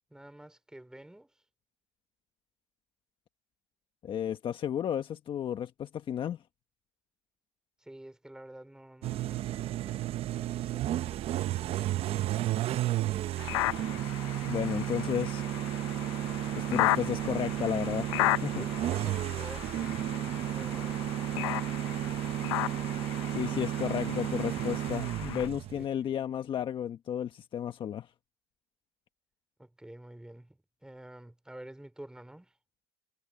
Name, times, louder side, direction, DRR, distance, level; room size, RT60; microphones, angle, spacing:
voice 1, 0.1-1.3 7.8-11.1 18.5-20.0 20.3-21.0 25.7-26.1 29.6-32.6, right 1 dB, 5° right, 4.4 m, -50 dB
voice 2, 4.0-6.4 14.5-15.4 16.5-18.6 23.3-28.1, left 9 dB, 35° left, 1.4 m, -33 dB
sound 1, 9.0-25.8, right 13 dB, 45° right, 0.8 m, -33 dB
sound 2, 13.4-25.5, left 19 dB, 85° left, 0.8 m, -35 dB
supercardioid pair, 115°, 14 cm